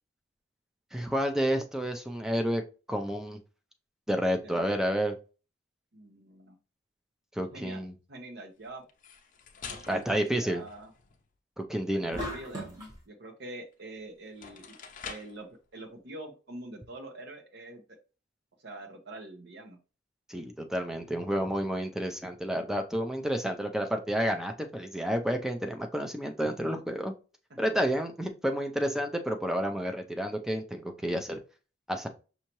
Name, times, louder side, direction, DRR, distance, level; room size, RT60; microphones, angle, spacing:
voice 1, 0.9-2.6 2.9-3.4 4.1-5.1 7.4-7.9 9.9-10.6 11.6-12.2 20.3-27.1 27.6-31.4 31.9-32.1, equal, 5° right, 4 dB, 0.5 m, -30 dB
voice 2, 5.9-6.6 7.5-7.8 8.1-8.8 9.7-10.9 11.9-12.8 13.1-14.7 15.0-17.8 18.6-19.8, right 2 dB, 65° right, 4 dB, 1.0 m, -45 dB
sound 1, 8.9-11.3 13.7-13.8 14.3-15.5, left 6 dB, 45° left, 0.5 m, -46 dB
sound 2, 12.1-13.0, equal, 20° right, 1.6 m, -37 dB
5.7 x 2.8 x 3.0 m, 0.34 s
head